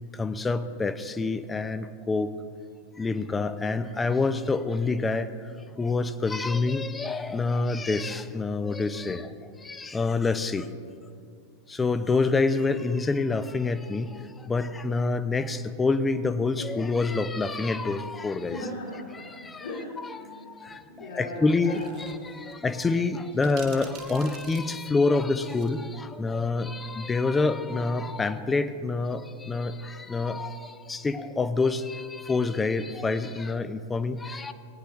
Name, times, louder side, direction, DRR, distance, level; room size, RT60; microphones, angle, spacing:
voice 1, 0.1-2.3 3.0-10.7 11.7-18.6 19.3-19.6 20.3-34.5, left 3 dB, 15° left, 12 dB, 0.5 m, -27 dB
voice 2, 18.4-22.5, left 2 dB, 65° left, -7 dB, 2.9 m, -39 dB
sound 1, 21.6-22.1 22.5-22.6 23.4-25.7, right 8 dB, 40° right, 1.4 m, -46 dB
18.5 x 9.8 x 3.0 m, 2.3 s
figure-of-eight pair, 90°, 0 cm